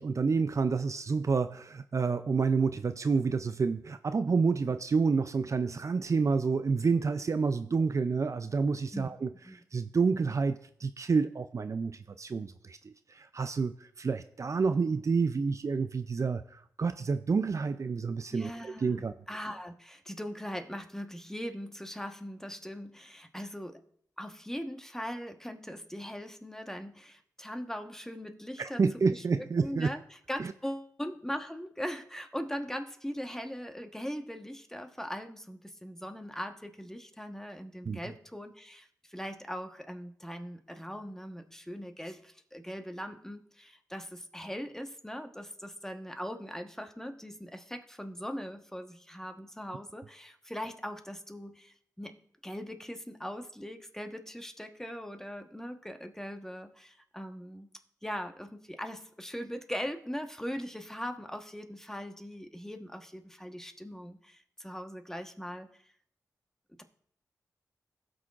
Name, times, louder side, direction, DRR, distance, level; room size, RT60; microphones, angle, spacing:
voice 1, 0.0-19.1 28.6-29.9 30.4-30.5 37.8-38.0, right 4 dB, 50° right, 10 dB, 0.4 m, -29 dB
voice 2, 18.3-19.0 19.3-23.8 24.2-28.8 29.1-52.2 52.4-57.7 58.0-65.8, equal, 5° left, 6 dB, 1.2 m, -40 dB
17.0 x 6.1 x 2.5 m, 0.64 s
cardioid pair, 45°, 7 cm